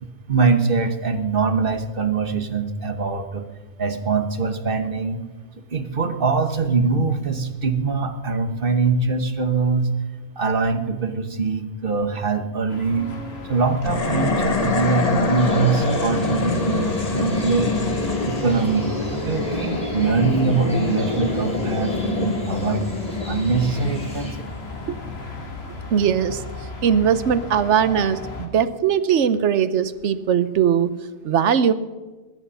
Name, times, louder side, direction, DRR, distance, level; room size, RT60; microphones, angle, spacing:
voice 1, 0.0-3.5 3.8-5.2 5.7-9.9 10.4-13.1 13.5-17.8 18.2-22.8 23.3-24.4, right 4 dB, 50° right, 8 dB, 1.3 m, -23 dB
sound 1, 12.7-28.5, left 2 dB, 60° left, 2.1 m, -35 dB
sound 2, 13.8-25.2, left 3 dB, 35° left, 1.3 m, -25 dB
sound 3, 15.4-24.3, equal, 5° left, 3.8 m, -43 dB
voice 2, 25.9-26.4 26.8-30.9 31.2-31.7, right 8 dB, 90° right, 14 dB, 1.1 m, -20 dB
20.0 x 10.5 x 5.6 m, 1.2 s
omnidirectional pair, 1.2 m